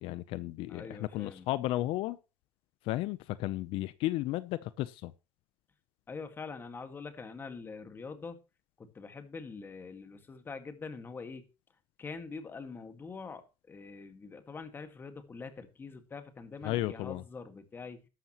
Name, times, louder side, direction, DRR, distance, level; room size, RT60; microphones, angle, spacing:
voice 1, 0.0-2.2 2.9-5.1 16.6-17.2, left 16 dB, 75° left, 0.7 m, -34 dB
voice 2, 0.7-1.5 6.1-8.4 8.8-11.5 12.0-18.1, left 4 dB, 25° left, 1.8 m, -44 dB
13.0 x 11.5 x 3.0 m
cardioid pair, 145°, 9 cm